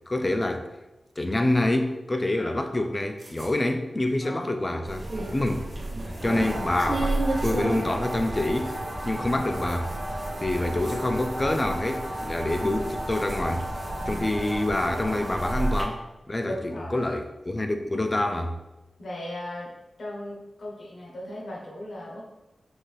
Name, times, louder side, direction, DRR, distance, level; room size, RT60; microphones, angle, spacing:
voice 1, 0.1-0.7 1.2-5.7 6.2-7.2 7.4-8.7 9.1-9.9 10.4-13.7 14.1-16.0 16.3-18.6, left 1 dB, 25° left, 6 dB, 0.3 m, -26 dB
voice 2, 2.3-2.7 4.2-4.6 6.2-6.5 14.0-14.3 16.4-17.0 19.0-19.7 20.0-22.2, left 1 dB, 70° left, -3 dB, 1.0 m, -37 dB
sound 1, 3.2-3.6 4.7-4.8 5.0-5.8 7.0-7.6 8.1-8.2 9.1-9.2 10.8-11.3 13.1-13.7 14.1-14.6, right 2 dB, 50° right, 0.6 m, -51 dB
sound 2, 4.9-15.8, right 1 dB, 85° right, 0.9 m, -32 dB
sound 3, 6.2-15.8, right 1 dB, 20° right, 0.9 m, -36 dB
3.9 x 2.6 x 3.3 m, 1.0 s
wide cardioid pair, 100°, 0 cm